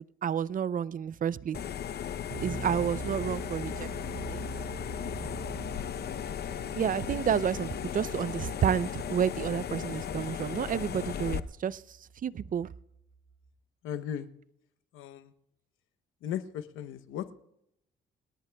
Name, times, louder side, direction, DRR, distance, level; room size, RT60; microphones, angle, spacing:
voice 1, 0.0-1.6 2.4-4.4 6.7-11.8 12.2-12.7, right 8 dB, 45° right, 0.5 m, -30 dB
sound 1, 1.5-11.4, left 9 dB, 55° left, 0.7 m, -36 dB
sound 2, 2.3-13.5, right 4 dB, 75° right, 6.5 m, -44 dB
voice 2, 13.8-14.3 14.9-15.3 16.2-17.3, left 9 dB, 90° left, 0.9 m, -36 dB
29.5 x 18.5 x 2.3 m
cardioid pair, 90°, 20 cm